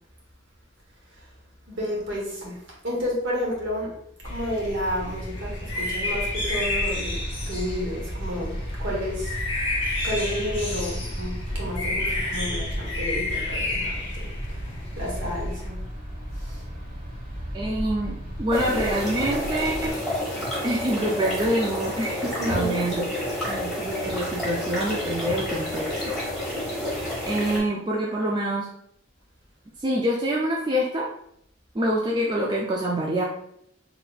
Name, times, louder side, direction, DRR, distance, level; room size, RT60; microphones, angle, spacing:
voice 1, 1.7-2.6 2.8-3.9 4.2-7.2 7.5-9.3 10.0-14.3 15.0-15.8 16.4-16.6 22.4-22.8, equal, 65° right, -2 dB, 1.2 m, -31 dB
sound 1, 4.2-15.7, left 1 dB, 30° left, 1.2 m, -30 dB
sound 2, 6.0-19.9, equal, 50° right, 1.0 m, -36 dB
voice 2, 17.5-20.0 20.6-23.0 23.5-26.2 27.3-28.7 29.8-31.1 31.7-33.2, right 1 dB, 25° right, -2 dB, 0.3 m, -26 dB
sound 3, 18.5-27.6, left 1 dB, ahead, 1.4 m, -29 dB
3.8 x 3.3 x 2.3 m, 0.73 s
head